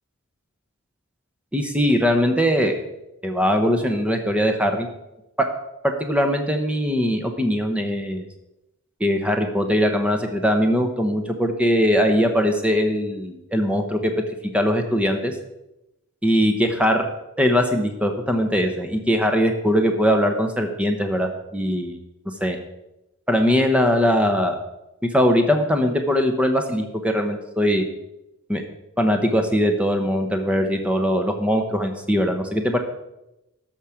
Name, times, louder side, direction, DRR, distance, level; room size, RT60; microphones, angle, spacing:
voice 1, 1.5-2.8 3.2-4.9 5.4-5.5 5.8-8.2 9.0-14.1 14.5-15.3 16.2-17.0 17.4-22.0 22.4-22.6 23.3-24.6 25.1-27.8 28.5-28.6 29.0-32.8, equal, 5° right, 5 dB, 0.9 m, -21 dB
13.0 x 5.9 x 5.0 m, 0.91 s
head